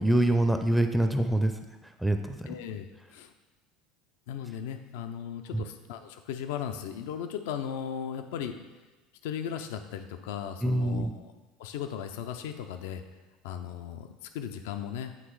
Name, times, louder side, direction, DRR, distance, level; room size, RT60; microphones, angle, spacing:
voice 1, 0.0-2.5 5.5-5.6 10.6-11.1, right 1 dB, ahead, 6 dB, 0.4 m, -26 dB
voice 2, 2.5-3.3 4.3-8.6 9.2-11.3 11.6-13.0 13.4-15.2, left 8 dB, 80° left, 8 dB, 0.4 m, -37 dB
8.1 x 3.1 x 4.7 m, 1.2 s
supercardioid pair, 100°, 0 cm